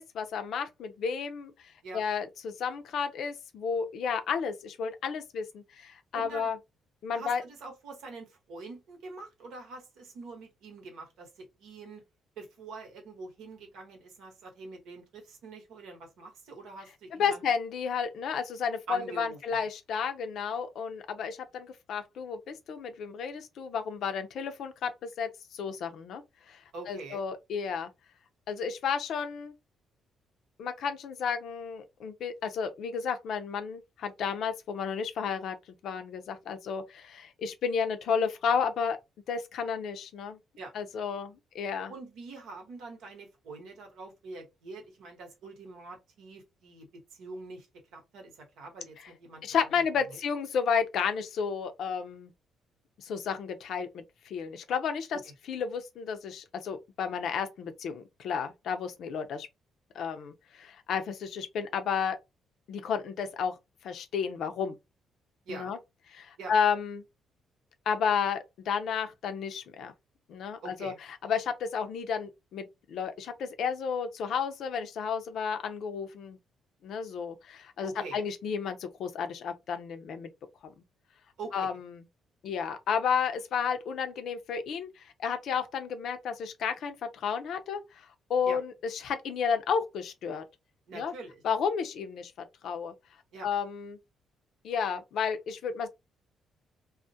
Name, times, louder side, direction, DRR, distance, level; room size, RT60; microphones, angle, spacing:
voice 1, 0.0-1.5 1.9-6.6 7.0-7.4 17.2-27.9 28.5-29.5 30.6-35.6 35.8-39.0 39.3-40.4 40.7-41.9 49.4-52.3 53.0-55.2 55.5-59.5 59.9-62.2 62.7-63.5 63.8-64.8 65.5-65.8 66.1-67.0 67.9-69.9 70.3-70.9 71.2-76.4 76.8-80.3 80.6-80.7 81.5-82.0 82.4-90.4 90.9-91.1 91.4-92.9 93.4-94.0 94.6-95.9, left 6 dB, 70° left, 0.5 m, -32 dB
voice 2, 6.1-6.5 7.1-12.0 12.4-17.4 18.9-19.6 26.7-27.2 40.6-40.7 41.9-49.8 50.1-50.2 55.1-55.3 65.5-65.7 66.4-66.5 70.6-71.0 77.8-78.3 81.4-81.7 88.4-88.6 90.9-91.4 93.3-93.5, right 3 dB, 85° right, 0.9 m, -45 dB
2.3 x 2.0 x 2.6 m
cardioid pair, 90°, 0 cm